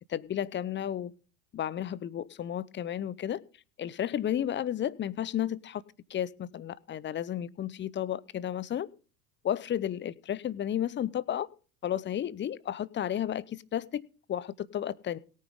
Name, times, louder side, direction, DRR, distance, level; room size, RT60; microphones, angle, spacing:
voice 1, 0.1-1.1 1.5-3.4 3.8-5.8 6.1-8.9 9.4-11.5 11.8-14.0 14.3-15.2, left 10 dB, 25° left, 0.7 m, -32 dB
17.5 x 9.6 x 3.7 m
hypercardioid pair, 80°, 47 cm